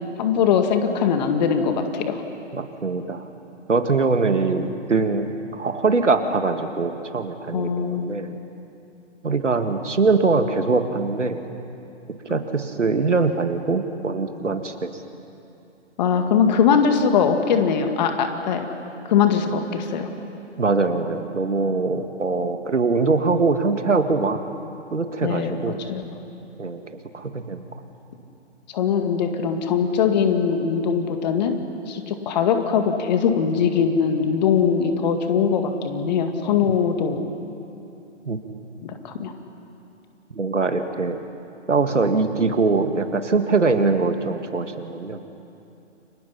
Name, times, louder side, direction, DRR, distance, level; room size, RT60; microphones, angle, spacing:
voice 1, 0.2-2.2 7.5-8.1 12.3-12.4 16.0-18.6 19.1-20.1 25.2-26.0 28.7-31.6 31.9-37.2 38.8-39.3, left 7 dB, 35° left, 6 dB, 2.1 m, -21 dB
voice 2, 2.5-3.3 3.7-8.4 9.2-11.4 12.3-14.9 20.6-24.4 24.9-25.8 26.6-27.6 36.6-36.7 38.3-38.4 40.3-41.2 41.7-45.2, right 4 dB, 80° right, 7 dB, 2.0 m, -22 dB
30.0 x 24.5 x 5.8 m, 2.8 s
figure-of-eight pair, 135°, 36 cm